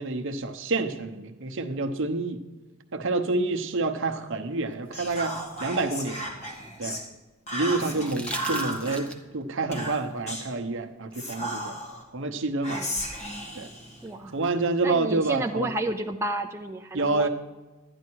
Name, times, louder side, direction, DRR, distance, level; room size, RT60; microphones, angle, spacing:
voice 1, 0.0-2.4 2.9-6.2 6.8-7.0 7.5-11.8 12.1-12.8 13.6-13.7 14.3-15.7 16.9-17.3, right 3 dB, 60° right, 6 dB, 0.9 m, -28 dB
sound 1, 4.7-7.0 7.9-9.4 11.1-11.2, equal, 5° left, 0.8 m, -41 dB
Whispering, 4.9-7.1 7.5-9.0 9.7-10.5 11.1-12.0 12.6-14.5, equal, 30° left, 1.8 m, -34 dB
voice 2, 7.9-8.2 12.7-13.0 14.0-14.4 14.8-17.3, right 2 dB, 10° right, 3 dB, 0.4 m, -32 dB
12.0 x 9.6 x 4.6 m, 1.2 s
head